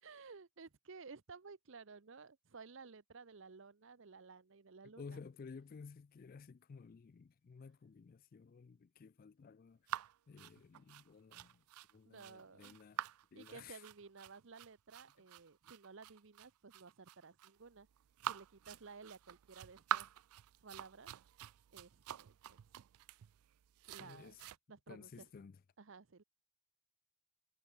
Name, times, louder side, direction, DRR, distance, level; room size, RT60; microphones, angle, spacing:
voice 1, 0.0-5.2 12.0-12.8 13.3-17.9 18.2-20.1 20.6-21.1 21.7-22.6 23.9-24.4 24.7-25.3 25.8-26.2, right 4 dB, 60° right, 0.7 m, -55 dB
voice 2, 4.8-10.0 10.3-11.6 11.9-13.0 13.3-13.8 24.0-24.4 24.9-25.6, left 5 dB, 40° left, 0.3 m, -54 dB
sound 1, 9.9-24.6, right 11 dB, 85° right, 0.4 m, -46 dB
head